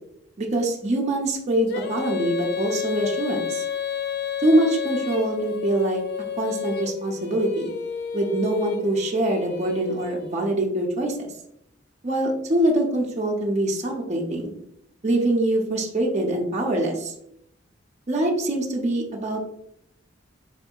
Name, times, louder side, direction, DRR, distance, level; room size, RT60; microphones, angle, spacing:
voice 1, 0.4-3.6 4.4-6.0 6.3-7.7 8.1-11.3 12.0-14.5 15.0-17.1 18.1-19.5, right 1 dB, 35° right, -1 dB, 0.5 m, -24 dB
Female singing, 1.7-10.5, left 7 dB, 55° left, 0.4 m, -31 dB
4.2 x 2.7 x 2.2 m, 0.76 s
head